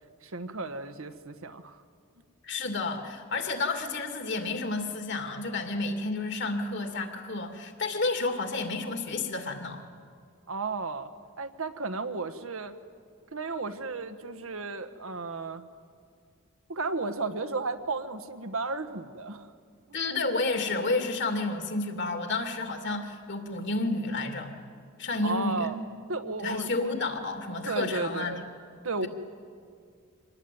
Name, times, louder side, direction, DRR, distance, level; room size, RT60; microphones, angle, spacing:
voice 1, 0.2-1.8 10.5-11.1 11.4-12.8 13.3-15.6 16.7-19.5 25.2-25.8 26.1-26.9 27.6-28.5 28.8-29.1, right 3 dB, 75° right, 8 dB, 1.4 m, -34 dB
voice 2, 2.4-9.8 19.9-24.5 25.0-25.7 26.4-28.4, left 3 dB, 55° left, 5 dB, 2.6 m, -31 dB
25.0 x 19.5 x 9.4 m, 2.2 s
head